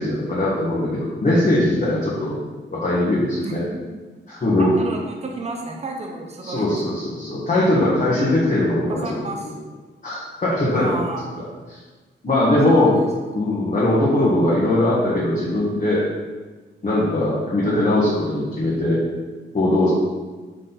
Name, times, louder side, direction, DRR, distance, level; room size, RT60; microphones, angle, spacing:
voice 1, 0.0-2.4 2.7-3.6 4.3-4.7 6.4-9.0 9.4-9.5 10.0-11.0 11.4-11.8 12.2-12.9 13.3-16.0 16.8-19.0 19.5-19.9, left 1 dB, 40° left, -8 dB, 1.4 m, -20 dB
voice 2, 4.6-6.8 9.0-9.5 10.7-11.3 12.7-13.1, right 3 dB, 35° right, 1 dB, 0.7 m, -31 dB
6.4 x 4.2 x 4.0 m, 1.3 s
wide cardioid pair, 140°, 20 cm